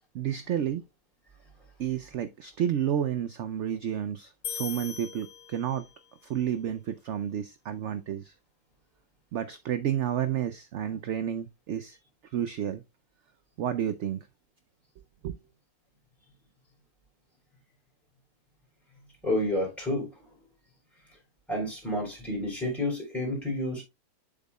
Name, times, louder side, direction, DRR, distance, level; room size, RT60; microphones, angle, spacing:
voice 1, 0.1-0.8 1.8-5.9 6.3-8.3 9.3-12.0 12.3-12.8 13.6-14.3 15.2-15.3, right 10 dB, 65° right, 0.7 m, -31 dB
sound 1, 4.4-6.1, left 8 dB, 80° left, 1.6 m, -39 dB
voice 2, 19.2-20.1 21.5-23.8, left 1 dB, ahead, 3.8 m, -30 dB
7.5 x 7.2 x 2.2 m
omnidirectional pair, 1.7 m